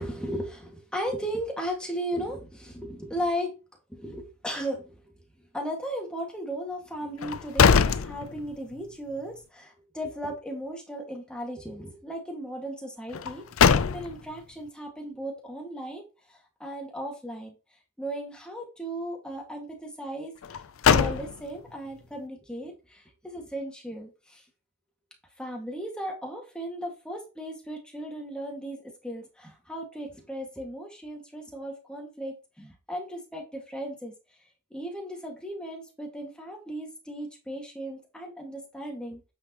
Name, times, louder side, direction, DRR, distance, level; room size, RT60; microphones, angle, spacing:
voice 1, 0.0-3.5 3.9-5.0 5.4-17.6 18.0-24.4 25.4-34.1 34.7-39.2, equal, 5° left, 0 dB, 1.9 m, -36 dB
sound 1, 7.2-8.8 9.2-9.3 13.1-14.4 20.4-21.7, left 6 dB, 70° left, 0.5 m, -23 dB
8.7 x 6.3 x 3.0 m, 0.30 s
head